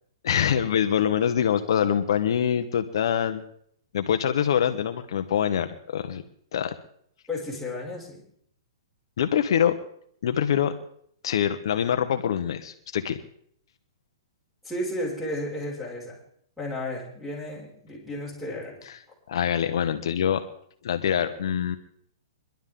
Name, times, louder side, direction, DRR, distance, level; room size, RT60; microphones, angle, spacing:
voice 1, 0.2-3.4 3.9-6.2 6.5-6.8 9.2-9.8 10.2-10.7 11.2-13.2 19.3-20.4 20.8-21.8, left 9 dB, 65° left, 8 dB, 1.1 m, -24 dB
voice 2, 7.3-8.2 14.6-16.2 16.6-18.8, left 1 dB, ahead, -3 dB, 5.8 m, -33 dB
23.5 x 12.0 x 3.8 m, 0.67 s
hypercardioid pair, 150°, 3 cm